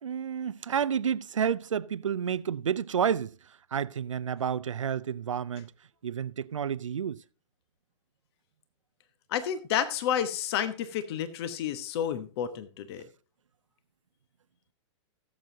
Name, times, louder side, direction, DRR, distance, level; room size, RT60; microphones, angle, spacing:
voice 1, 0.0-5.7 6.0-7.2, right 8 dB, 85° right, 0.5 m, -30 dB
voice 2, 9.3-13.1, left 9 dB, 55° left, 1.1 m, -30 dB
17.5 x 7.5 x 2.7 m
hypercardioid pair, 110°, 16 cm